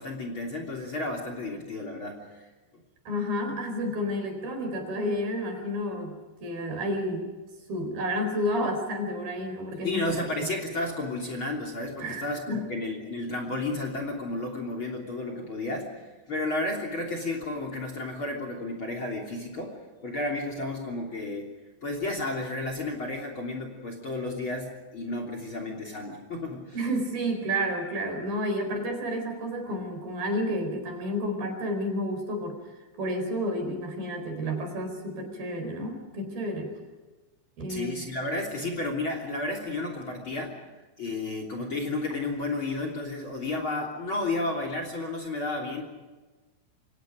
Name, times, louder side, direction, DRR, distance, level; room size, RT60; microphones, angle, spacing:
voice 1, 0.0-2.5 9.8-21.5 21.8-26.8 37.7-40.6 41.0-45.8, left 2 dB, 30° left, 3 dB, 3.5 m, -32 dB
voice 2, 3.1-7.3 7.7-10.0 10.4-10.5 12.0-12.6 26.7-32.6 33.0-36.7 37.6-38.0, equal, 60° right, 5 dB, 6.2 m, -30 dB
28.0 x 24.5 x 5.2 m, 1.2 s
omnidirectional pair, 4.9 m